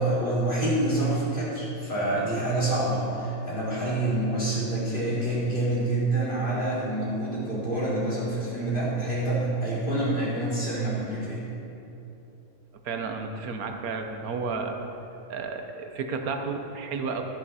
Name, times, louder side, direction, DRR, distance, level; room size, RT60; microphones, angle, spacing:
voice 1, 0.0-11.4, right 2 dB, 35° left, -8 dB, 3.1 m, -27 dB
voice 2, 12.8-14.8 15.3-17.2, right 4 dB, 85° right, 5 dB, 1.4 m, -32 dB
13.0 x 10.0 x 4.2 m, 3.0 s
omnidirectional pair, 1.5 m